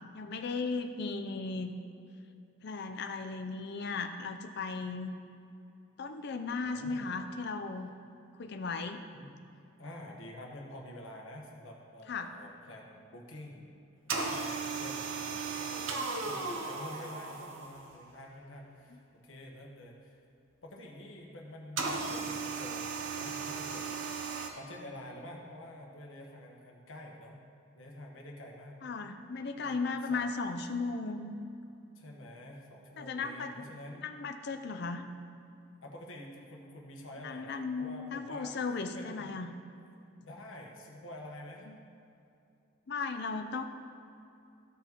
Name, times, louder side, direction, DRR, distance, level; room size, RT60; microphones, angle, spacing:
voice 1, 0.1-1.7 2.6-5.2 6.0-7.9 8.4-9.0 12.1-12.3 28.8-31.3 33.0-33.7 34.0-35.1 37.2-39.5 41.7-41.8 42.9-43.7, left 4 dB, 60° left, 7 dB, 0.6 m, -36 dB
voice 2, 6.6-7.2 8.5-8.6 9.1-9.3 9.8-13.7 14.0-20.2 20.6-24.0 24.5-27.4 27.7-28.8 29.6-29.8 30.1-30.2 31.9-34.1 35.8-38.5 38.9-39.4 40.2-41.7, left 1 dB, 90° left, 0 dB, 1.3 m, -48 dB
sound 1, 14.1-18.0 21.8-24.5, right 4 dB, 80° right, 0.8 m, -36 dB
14.0 x 5.9 x 3.0 m, 2.7 s
head